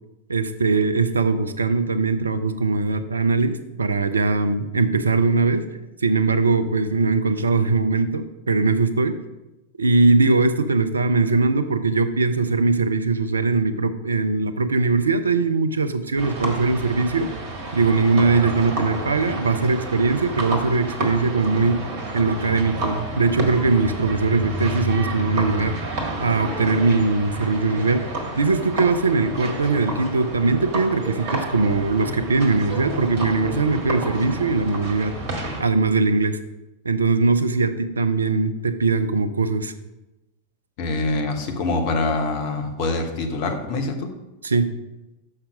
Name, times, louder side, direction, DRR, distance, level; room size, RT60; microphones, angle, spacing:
voice 1, 0.3-5.6 6.0-9.2 9.8-17.3 17.7-21.8 22.1-25.8 26.2-35.1 35.6-36.4 36.8-39.7 44.4-44.7, right 3 dB, 75° right, 10 dB, 0.5 m, -21 dB
sound 1, 16.2-35.6, right 1 dB, 45° right, 1.6 m, -30 dB
voice 2, 40.8-44.1, left 2 dB, 45° left, 4 dB, 1.1 m, -25 dB
6.6 x 5.8 x 4.9 m, 0.99 s
figure-of-eight pair, 90°, 0 cm